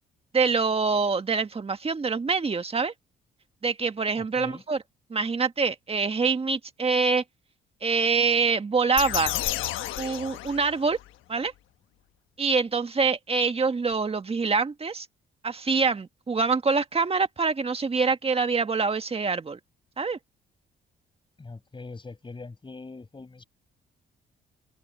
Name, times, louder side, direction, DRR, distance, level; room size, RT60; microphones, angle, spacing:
voice 1, 0.3-2.9 3.6-4.8 5.1-7.2 7.8-9.3 10.0-11.0 11.3-11.5 12.4-15.1 15.4-19.6 20.0-20.2, right 4 dB, 30° right, 1.7 m, -25 dB
voice 2, 4.2-4.7 21.4-23.4, left 3 dB, 25° left, 6.7 m, -42 dB
sound 1, 9.0-11.1, left 14 dB, 85° left, 1.1 m, -31 dB
cardioid pair, 90°, 20 cm